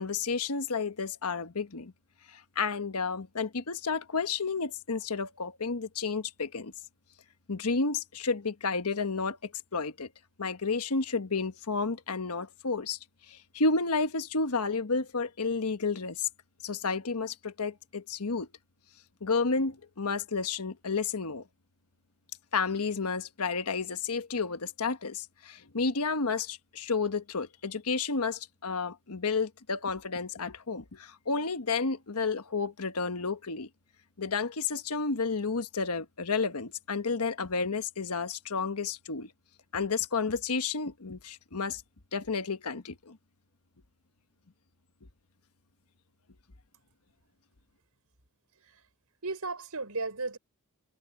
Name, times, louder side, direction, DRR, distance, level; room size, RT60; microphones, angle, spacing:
voice 1, 0.0-1.9 2.3-6.7 7.5-10.1 10.4-13.0 13.3-16.3 16.6-18.5 19.2-21.4 22.5-33.7 34.2-39.3 39.7-41.8 42.1-43.2, left 4 dB, 80° left, 1.3 m, -31 dB
voice 2, 49.2-50.4, right 3 dB, 80° right, 5.4 m, -35 dB
head